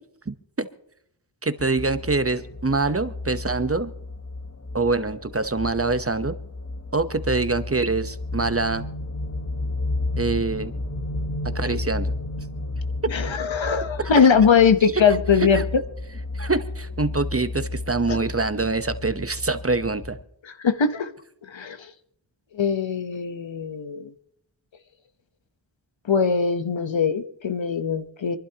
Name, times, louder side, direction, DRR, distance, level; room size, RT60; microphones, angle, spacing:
voice 1, 0.3-0.7 1.4-3.9 4.7-6.3 6.9-8.9 10.2-10.7 11.4-12.1 13.0-13.1 14.0-14.1 15.5-15.6 16.3-20.2, right 3 dB, 30° right, 11 dB, 1.0 m, -25 dB
sound 1, 1.6-20.2, left 2 dB, 35° left, 1.3 m, -32 dB
voice 2, 13.1-15.6 20.4-21.1 21.5-21.8 22.5-24.1 26.1-28.4, left 6 dB, 80° left, 10 dB, 1.1 m, -21 dB
26.5 x 11.5 x 2.9 m, 0.76 s
cardioid pair, 40°, 45 cm